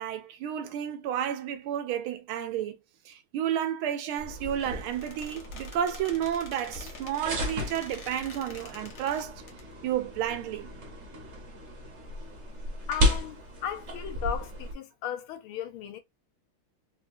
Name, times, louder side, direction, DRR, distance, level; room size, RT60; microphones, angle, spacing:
voice 1, 0.0-2.8 3.1-9.4 9.8-10.7, right 10 dB, 85° right, 1.5 m, -31 dB
sound 1, 4.2-14.7, equal, 45° right, 1.0 m, -34 dB
Squeak, 4.5-9.6, left 4 dB, 65° left, 0.7 m, -48 dB
voice 2, 12.9-16.0, left 9 dB, 85° left, 1.6 m, -36 dB
4.2 x 2.3 x 2.5 m
omnidirectional pair, 2.3 m